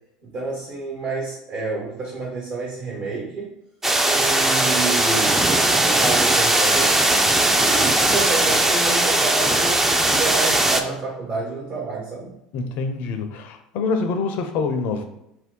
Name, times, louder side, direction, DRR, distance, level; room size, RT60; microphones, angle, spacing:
voice 1, 0.2-3.5 4.0-9.8 10.0-12.3, right 4 dB, 55° right, -3 dB, 1.1 m, -29 dB
sound 1, 3.8-10.8, right 1 dB, 10° right, 0.4 m, -19 dB
voice 2, 12.5-15.0, left 4 dB, 60° left, 6 dB, 0.5 m, -25 dB
2.6 x 2.2 x 3.6 m, 0.81 s
hypercardioid pair, 80°, 3 cm